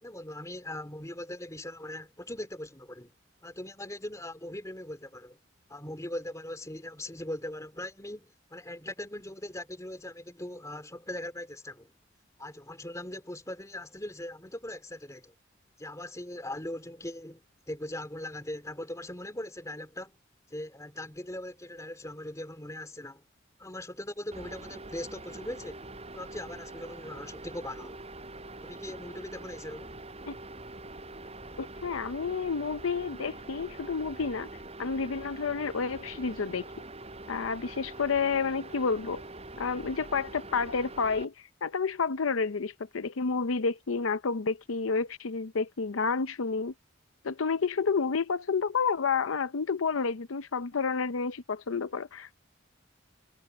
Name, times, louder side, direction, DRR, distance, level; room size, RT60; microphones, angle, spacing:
voice 1, 0.0-3.1 3.4-5.4 5.7-11.9 12.4-15.3 15.8-20.1 20.5-23.2 23.6-25.8 26.1-28.0 28.6-30.0 31.2-31.3, left 1 dB, 15° left, 3.2 m, -40 dB
sound 1, 24.3-41.3, right 2 dB, 30° right, 7.4 m, -44 dB
voice 2, 31.6-34.5 34.8-36.7 37.3-39.2 39.6-41.3 41.6-46.7 47.2-52.3, left 5 dB, 90° left, 0.7 m, -30 dB
head